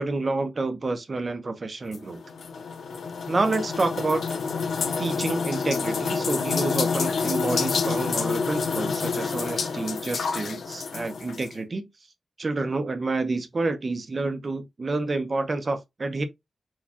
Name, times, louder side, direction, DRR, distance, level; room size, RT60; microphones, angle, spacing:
voice 1, 0.0-2.2 3.3-4.2 5.0-11.9 12.4-16.2, right 3 dB, 35° right, 0.7 m, -28 dB
sound 1, 1.9-11.5, left 5 dB, 85° left, 0.7 m, -28 dB
4.6 x 2.2 x 4.2 m
wide cardioid pair, 165°, 0 cm